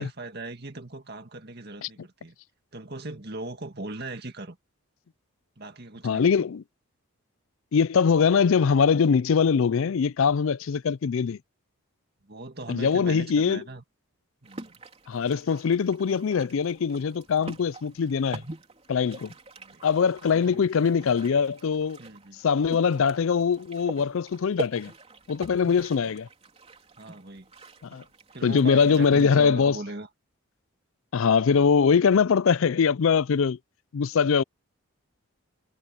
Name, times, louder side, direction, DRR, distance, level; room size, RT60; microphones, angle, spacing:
voice 1, 0.0-2.3 2.7-4.6 5.6-6.3 12.2-13.8 14.4-14.8 17.4-17.5 19.6-19.8 20.3-20.7 22.0-22.4 26.0-26.1 27.0-27.5 28.3-30.1, right 2 dB, 45° right, 2.0 m, -39 dB
voice 2, 6.0-6.6 7.7-11.4 12.7-13.6 15.1-18.4 18.9-19.3 19.8-22.0 22.4-24.9 25.3-26.3 27.8-28.0 28.4-29.8 31.1-33.6 33.9-34.4, left 6 dB, 65° left, 0.4 m, -22 dB
sound 1, 14.4-29.3, right 2 dB, 30° right, 3.6 m, -43 dB
head